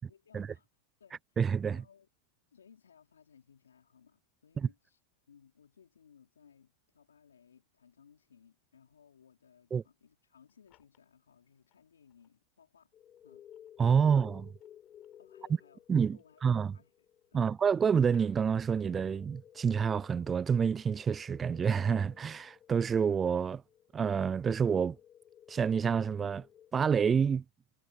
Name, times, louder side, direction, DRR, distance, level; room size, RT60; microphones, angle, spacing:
voice 1, 0.1-0.7 1.0-1.2 1.7-2.1 2.5-5.0 5.3-12.9 13.2-13.4 15.2-15.8 16.1-17.6, left 7 dB, 85° left, 4.6 m, -62 dB
voice 2, 1.4-1.8 4.6-4.7 9.7-9.8 13.8-14.5 15.9-16.7 17.3-23.6 23.9-25.0 25.5-26.5 26.7-27.4, right 6 dB, 25° right, 0.3 m, -28 dB
sound 1, 10.2-12.4 12.9-16.7 17.0-19.0, left 19 dB, 50° left, 5.0 m, -74 dB
sound 2, 12.9-27.1, left 10 dB, 35° left, 0.6 m, -57 dB
hypercardioid pair, 100°, 0 cm